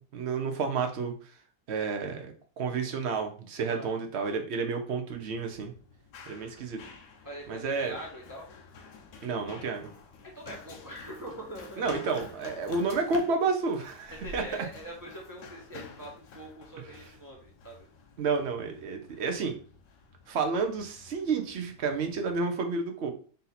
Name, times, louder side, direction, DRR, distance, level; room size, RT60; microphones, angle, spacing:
voice 1, 0.1-1.3 1.7-5.7 6.3-6.8 7.5-8.0 9.2-9.9 11.8-14.4 18.2-19.6 20.3-23.1, right 4 dB, 60° right, 4 dB, 0.7 m, -30 dB
Run, 5.1-22.4, left 4 dB, 75° left, 1.3 m, -50 dB
voice 2, 7.2-8.5 10.3-11.9 14.1-17.9, right 1 dB, 20° right, -2 dB, 0.6 m, -43 dB
4.0 x 2.7 x 4.0 m, 0.41 s
omnidirectional pair, 1.8 m